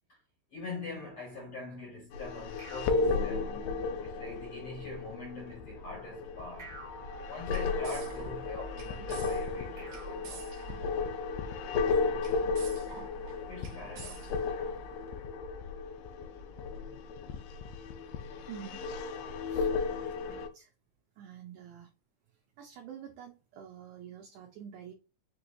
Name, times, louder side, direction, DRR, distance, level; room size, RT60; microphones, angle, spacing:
voice 1, 0.5-3.5 4.0-6.8 7.3-10.6 11.6-12.2 13.5-14.5, left 3 dB, 65° left, 1.4 m, -44 dB
sound 1, 2.1-20.5, left 4 dB, 80° left, 2.2 m, -34 dB
sound 2, 2.6-4.2 6.6-8.2 9.8-11.3, right 2 dB, 25° right, 1.0 m, -51 dB
sound 3, 7.1-15.2, right 5 dB, 65° right, 2.0 m, -47 dB
voice 2, 18.5-18.8 19.5-19.7 20.2-20.7 21.2-21.9 22.6-24.9, right 9 dB, 90° right, 1.8 m, -47 dB
6.1 x 2.9 x 2.6 m
omnidirectional pair, 4.3 m